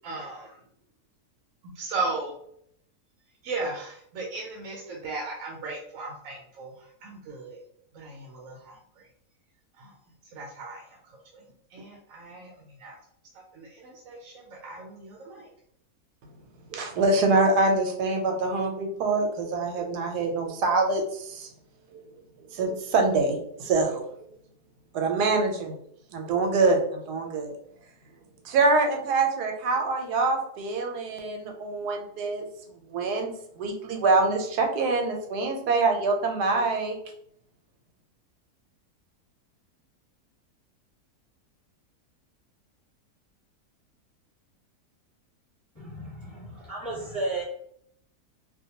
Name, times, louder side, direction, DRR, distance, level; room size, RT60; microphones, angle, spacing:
voice 1, 0.0-0.6 1.8-2.3 3.4-6.7 7.0-7.6 7.9-8.8 9.8-9.9 10.3-11.0 11.3-11.4 11.7-12.5 12.8-12.9 13.5-15.5, right 3 dB, 70° right, -1 dB, 0.9 m, -36 dB
voice 2, 16.7-21.5 21.9-22.0 22.5-24.1 24.9-25.8 26.1-27.5 28.4-32.5 32.9-37.0, right 3 dB, 90° right, 2 dB, 1.1 m, -25 dB
voice 3, 45.7-47.4, right 2 dB, 20° left, -9 dB, 1.1 m, -33 dB
2.5 x 2.2 x 2.7 m, 0.68 s
omnidirectional pair, 1.7 m